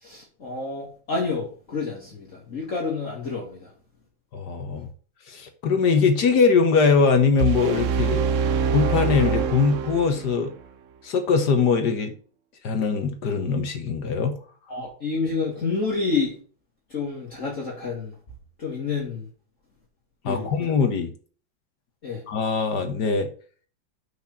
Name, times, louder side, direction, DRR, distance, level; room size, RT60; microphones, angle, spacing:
voice 1, 0.0-3.7 14.7-16.4 16.9-18.1 18.6-19.3 20.2-20.6 22.0-22.2, left 4 dB, 40° left, -3 dB, 2.4 m, -29 dB
voice 2, 4.3-4.9 5.3-8.2 8.7-10.5 11.0-12.1 12.6-14.4 20.2-21.1 22.3-23.3, left 5 dB, 60° left, 7 dB, 1.7 m, -21 dB
sound 1, 7.4-10.4, right 6 dB, 75° right, 0.7 m, -24 dB
6.2 x 5.8 x 7.1 m, 0.42 s
omnidirectional pair, 2.1 m